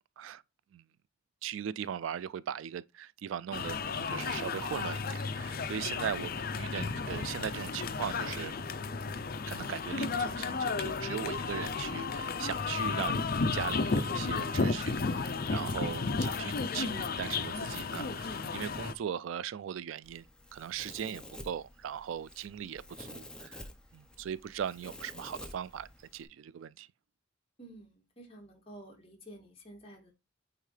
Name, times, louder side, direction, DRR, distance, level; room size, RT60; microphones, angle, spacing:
voice 1, 1.4-8.6 9.5-13.2 13.5-20.3 20.5-23.6 23.9-25.9 26.1-26.9, right 8 dB, 80° right, 0.3 m, -39 dB
sound 1, 3.5-18.9, left 4 dB, 50° left, 0.5 m, -33 dB
Domestic sounds home sounds, 20.0-26.2, left 1 dB, 5° left, 0.9 m, -50 dB
voice 2, 27.6-30.1, right 1 dB, 30° left, 2.5 m, -51 dB
8.9 x 3.7 x 3.3 m
head